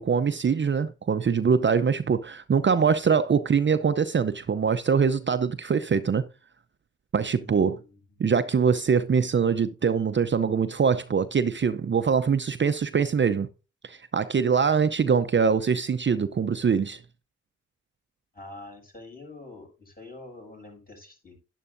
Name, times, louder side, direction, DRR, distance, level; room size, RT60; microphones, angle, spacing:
voice 1, 0.0-6.2 7.1-7.8 8.2-13.5 13.8-17.0, right 6 dB, 40° right, 0.6 m, -23 dB
voice 2, 7.3-8.0 18.3-21.4, left 2 dB, 30° left, 6.6 m, -46 dB
11.0 x 10.0 x 2.6 m
supercardioid pair, 50°, 31 cm